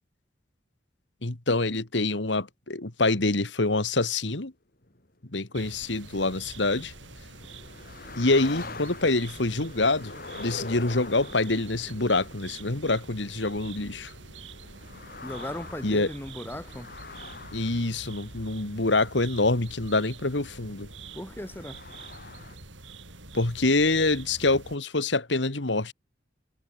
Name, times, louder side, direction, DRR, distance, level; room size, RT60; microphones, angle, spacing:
voice 1, 1.2-4.5 5.3-6.9 8.2-14.1 15.8-16.1 17.5-20.9 23.3-25.9, left 2 dB, 70° left, 2.0 m, -26 dB
sound 1, 4.8-22.6, left 3 dB, 50° left, 4.0 m, -45 dB
sound 2, 5.5-24.8, right 3 dB, 85° right, 6.8 m, -46 dB
voice 2, 15.2-16.9 21.1-21.8, left 1 dB, 10° left, 1.8 m, -37 dB
head